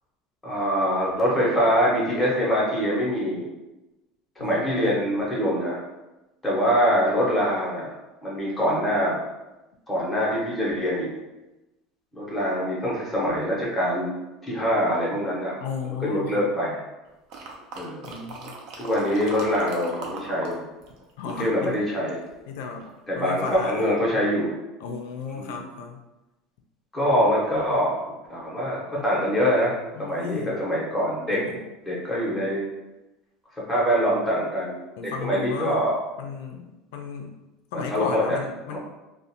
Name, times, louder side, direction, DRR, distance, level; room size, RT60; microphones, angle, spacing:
voice 1, 0.4-3.4 4.4-5.8 6.4-7.9 8.2-9.2 9.9-11.1 12.1-14.1 14.4-15.6 16.0-16.8 17.7-18.1 18.8-20.6 21.2-22.2 23.1-24.5 25.4-25.6 26.9-29.7 30.0-31.4 31.9-32.6 33.7-36.0 37.7-38.4 38.7-38.8, equal, 5° left, -6 dB, 0.7 m, -24 dB
voice 2, 4.4-5.0 15.6-16.5 18.0-18.5 21.2-21.7 22.5-23.9 24.8-26.0 27.0-27.1 29.0-29.1 29.9-30.6 31.3-31.6 35.0-35.9 36.2-37.3 37.7-38.8, left 5 dB, 80° left, 3 dB, 0.3 m, -34 dB
sound 1, 17.3-20.6 20.8-22.3 22.8-22.9, right 3 dB, 50° right, 0.4 m, -39 dB
2.5 x 2.0 x 2.7 m, 1.0 s
cardioid pair, 170°, 0 cm